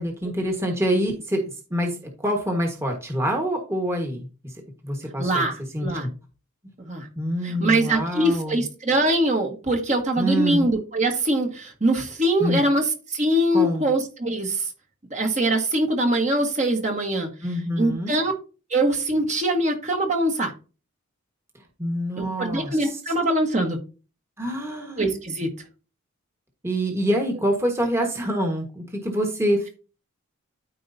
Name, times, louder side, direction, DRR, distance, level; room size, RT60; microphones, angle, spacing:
voice 1, 0.0-4.3 4.8-5.4 5.7-6.1 7.2-8.6 10.2-10.7 12.4-12.6 13.5-13.8 17.4-18.1 21.8-22.9 24.4-25.1 26.6-29.7, equal, 10° right, 1 dB, 1.4 m, -26 dB
voice 2, 5.2-6.1 6.8-7.1 7.4-14.7 15.1-17.3 17.8-18.3 18.7-20.5 22.2-23.8 25.0-25.5, right 1 dB, 30° right, 2 dB, 1.4 m, -23 dB
13.5 x 4.6 x 2.7 m, 0.34 s
head